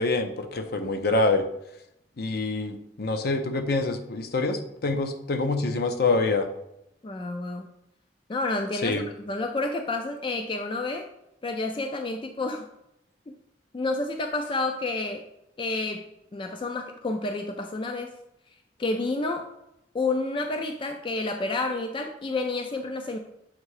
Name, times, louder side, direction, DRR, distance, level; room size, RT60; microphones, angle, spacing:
voice 1, 0.0-1.4 2.2-6.5 8.8-9.1, left 3 dB, 60° left, 7 dB, 0.6 m, -26 dB
voice 2, 7.0-7.7 8.3-11.1 11.4-12.7 13.3-13.4 13.7-15.3 15.6-16.1 16.3-18.1 18.8-19.5 19.9-23.2, left 2 dB, 30° left, 5 dB, 0.4 m, -29 dB
7.3 x 2.7 x 4.8 m, 0.83 s
head